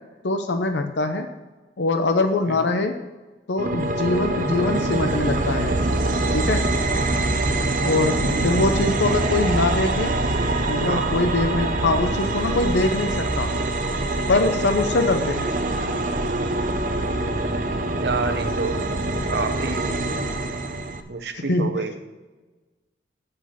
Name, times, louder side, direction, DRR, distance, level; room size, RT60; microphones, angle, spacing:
voice 1, 0.2-1.3 1.8-3.0 3.5-5.8 6.3-6.7 7.8-10.2 10.7-13.5 14.3-15.5 21.3-21.7, left 2 dB, 85° left, 7 dB, 0.7 m, -23 dB
sound 1, 3.6-21.0, right 2 dB, 45° right, 0.7 m, -24 dB
voice 2, 8.2-8.8 10.9-11.1 17.9-18.9 19.3-20.1 21.1-22.0, right 3 dB, 70° right, 7 dB, 0.9 m, -29 dB
8.2 x 6.7 x 5.7 m, 1.2 s
head